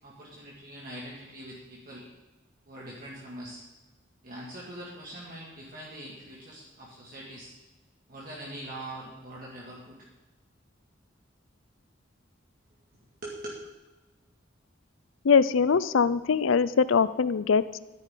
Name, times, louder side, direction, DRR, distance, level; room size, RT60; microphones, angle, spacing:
voice 1, 0.0-2.1 2.7-3.6 4.2-7.5 8.1-10.1 13.2-13.6, right 1 dB, 45° right, -5 dB, 2.2 m, -42 dB
voice 2, 15.2-17.8, left 5 dB, 90° left, 17 dB, 0.5 m, -22 dB
13.0 x 11.0 x 3.9 m, 1.2 s
head